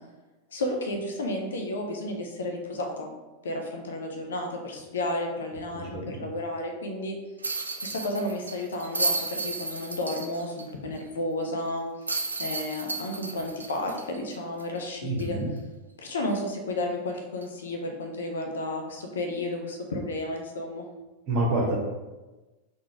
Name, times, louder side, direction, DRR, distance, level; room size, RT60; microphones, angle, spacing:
voice 1, 0.5-3.1 3.4-7.2 7.8-11.8 12.4-15.4 16.0-20.9, left 1 dB, 65° left, 3 dB, 0.6 m, -32 dB
sound 1, 7.4-10.6 11.0-11.1 12.1-14.8 15.2-15.3 17.4-17.6, right 3 dB, 75° right, 0.4 m, -32 dB
voice 2, 15.0-15.5 21.3-21.8, right 2 dB, 40° right, -2 dB, 1.1 m, -26 dB
3.9 x 2.3 x 4.5 m, 1.2 s
figure-of-eight pair, 90°, 0 cm